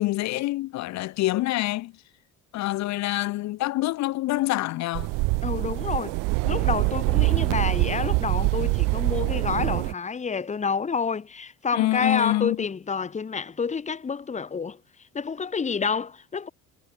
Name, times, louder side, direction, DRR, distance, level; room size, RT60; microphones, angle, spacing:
voice 1, 0.0-1.9 2.5-5.1 11.7-12.6, left 17 dB, 60° left, 1.0 m, -26 dB
sound 1, 4.9-9.9, right 26 dB, 80° right, 0.9 m, -24 dB
voice 2, 5.4-6.2 6.4-14.8 15.1-16.5, left 5 dB, 20° left, 3.4 m, -29 dB
cardioid pair, 140°, 32 cm